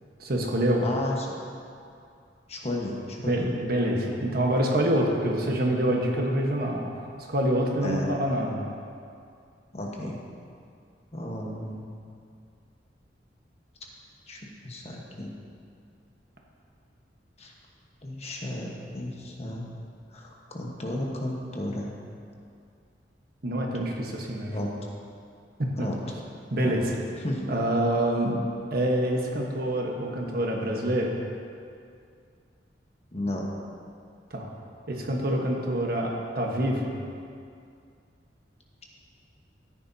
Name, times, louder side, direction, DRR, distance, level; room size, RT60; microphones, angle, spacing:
voice 1, 0.2-0.8 3.3-6.8 7.3-8.6 23.4-24.7 25.6-25.9 26.5-27.0 27.5-28.4 28.7-31.2 34.3-34.5 34.9-36.9, right 1 dB, 60° right, 0 dB, 1.3 m, -26 dB
voice 2, 0.8-1.3 2.5-3.4 7.8-8.2 9.7-10.2 11.1-11.9 14.3-15.3 17.4-17.5 18.0-19.7 20.1-21.9 24.5-24.7 25.8-26.0 26.6-26.8 27.2-27.5 33.1-33.5, left 1 dB, 35° left, -1 dB, 1.3 m, -33 dB
13.5 x 9.9 x 2.8 m, 2.4 s
head